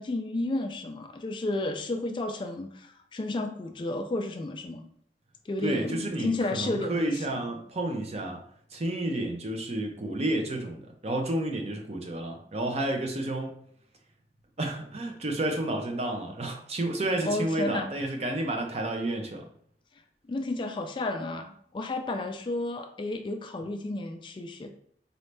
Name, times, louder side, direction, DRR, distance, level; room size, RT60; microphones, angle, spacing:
voice 1, 0.0-4.9 5.5-7.4 17.2-17.9 20.3-24.7, left 2 dB, 30° left, 6 dB, 0.3 m, -32 dB
voice 2, 5.6-8.4 8.7-13.5 14.6-19.5, right 1 dB, 35° right, 3 dB, 0.6 m, -30 dB
4.1 x 2.6 x 3.3 m, 0.64 s
head